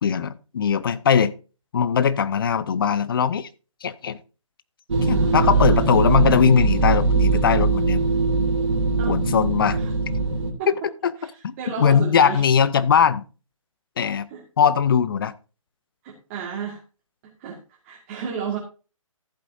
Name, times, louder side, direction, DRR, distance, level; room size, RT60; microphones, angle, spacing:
voice 1, 0.0-1.3 1.7-3.5 3.8-4.2 5.0-8.1 9.1-9.8 10.7-11.1 11.4-13.2 14.0-14.3 14.6-15.3, left 7 dB, 40° left, 0.7 m, -20 dB
sound 1, 4.9-10.5, right 3 dB, 55° right, 2.8 m, -21 dB
voice 2, 5.1-5.9 9.0-9.2 9.8-9.9 10.6-10.7 11.2-11.3 11.6-12.5 14.3-14.4 16.0-16.8 17.4-17.6 17.8-18.6, right 7 dB, 25° right, 1.9 m, -32 dB
14.5 x 8.0 x 2.7 m
figure-of-eight pair, 140°, 17 cm